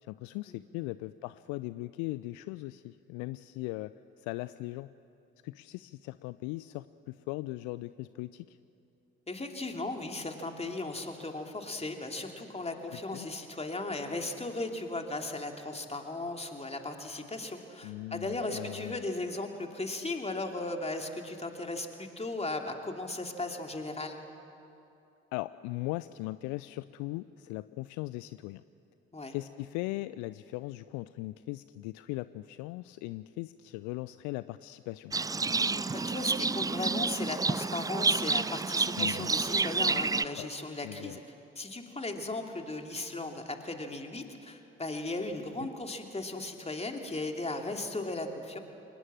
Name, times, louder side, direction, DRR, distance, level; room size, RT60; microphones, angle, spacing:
voice 1, 0.0-4.9 5.4-8.6 12.9-13.3 17.8-19.0 25.3-28.6 29.3-35.1 39.0-39.3 40.4-40.5 40.8-41.2 45.6-45.7, left 19 dB, 60° left, 16 dB, 0.5 m, -39 dB
voice 2, 9.3-24.2 29.1-29.3 35.9-41.2 41.6-48.6, left 2 dB, 20° left, 3 dB, 2.9 m, -37 dB
Livestock farm animals working animals, 35.1-40.2, right 4 dB, 10° right, 0.4 m, -29 dB
25.5 x 20.0 x 7.5 m, 2.7 s
figure-of-eight pair, 45°, 33 cm